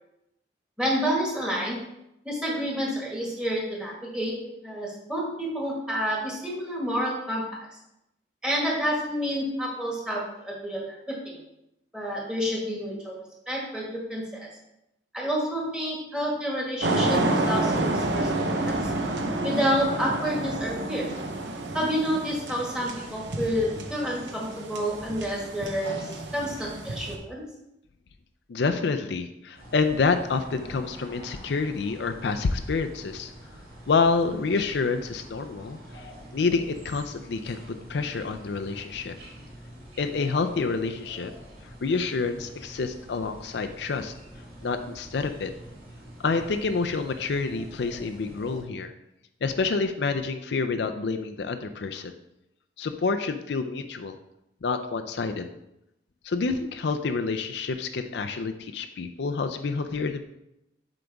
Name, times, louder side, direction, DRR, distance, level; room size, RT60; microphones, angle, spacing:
voice 1, 0.8-1.8 2.2-4.3 4.6-7.4 8.4-11.4 11.9-14.5 15.1-18.8 19.4-21.1 21.7-27.4, equal, 5° right, -4 dB, 1.8 m, -29 dB
sound 1, 16.8-27.2, right 2 dB, 80° right, 0.8 m, -29 dB
voice 2, 28.5-33.3 33.9-36.1 36.3-39.2 40.0-41.3 41.8-44.1 44.6-45.5 46.2-48.9 49.4-52.2 52.8-54.2 54.6-55.5 56.2-60.2, left 4 dB, 70° left, 7 dB, 0.4 m, -28 dB
sound 2, 29.5-48.6, right 1 dB, 60° right, 2.0 m, -46 dB
7.7 x 5.0 x 3.4 m, 0.86 s
head